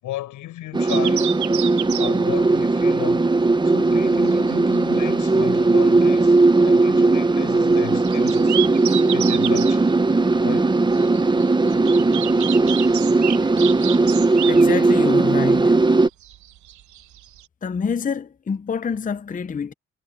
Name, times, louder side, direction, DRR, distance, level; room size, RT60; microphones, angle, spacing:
voice 1, 0.0-1.4 2.0-3.3 3.6-6.4 6.6-8.6 9.1-9.8 10.4-10.8, left 14 dB, 90° left, 6.5 m, -34 dB
sound 1, 0.7-16.1, right 3 dB, 15° right, 0.9 m, -18 dB
sound 2, 0.9-17.5, right 12 dB, 75° right, 1.2 m, -32 dB
voice 2, 14.5-15.8 17.6-19.7, left 6 dB, 25° left, 0.7 m, -26 dB
cardioid pair, 90°, 30 cm